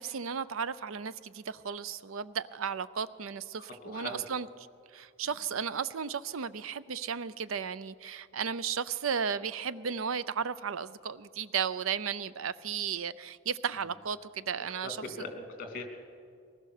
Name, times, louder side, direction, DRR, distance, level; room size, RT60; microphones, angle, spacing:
voice 1, 0.0-4.5 4.9-15.3, right 7 dB, 85° right, 0.6 m, -34 dB
voice 2, 3.8-4.2 14.8-15.8, left 2 dB, 40° left, 2.8 m, -40 dB
23.0 x 19.5 x 6.6 m
head